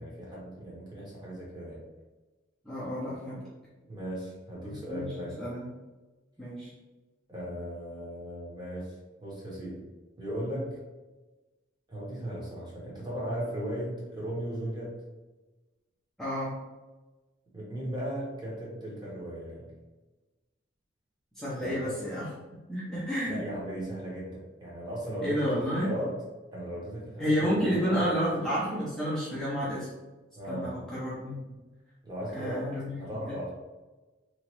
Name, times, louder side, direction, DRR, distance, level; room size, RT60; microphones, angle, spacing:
voice 1, 0.0-1.8 3.9-5.4 7.3-8.9 9.2-9.8 10.2-10.8 11.9-14.9 17.5-19.7 21.6-21.7 23.2-26.2 26.5-28.2 30.4-30.8 32.0-33.5, equal, 20° right, -6 dB, 1.0 m, -37 dB
voice 2, 2.6-3.4 4.6-5.7 6.4-6.7 16.2-16.5 21.4-22.3 22.7-23.4 25.2-25.9 27.2-29.9 30.5-31.4 32.3-33.0 33.3-33.4, equal, ahead, -10 dB, 0.6 m, -30 dB
3.0 x 2.4 x 3.0 m, 1.2 s
head